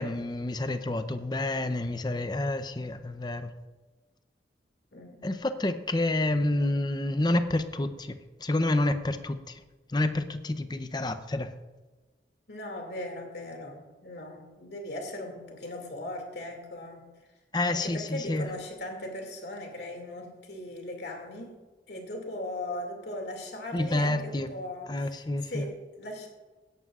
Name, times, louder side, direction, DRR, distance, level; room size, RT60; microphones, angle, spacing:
voice 1, 0.0-3.5 5.2-9.6 9.9-11.5 17.5-18.5 23.7-24.5 24.9-25.7, left 2 dB, 25° left, 10 dB, 0.6 m, -29 dB
voice 2, 12.5-17.1 17.7-21.6 21.9-26.3, left 1 dB, 65° left, 2 dB, 2.3 m, -39 dB
16.5 x 11.5 x 2.4 m, 1.2 s
head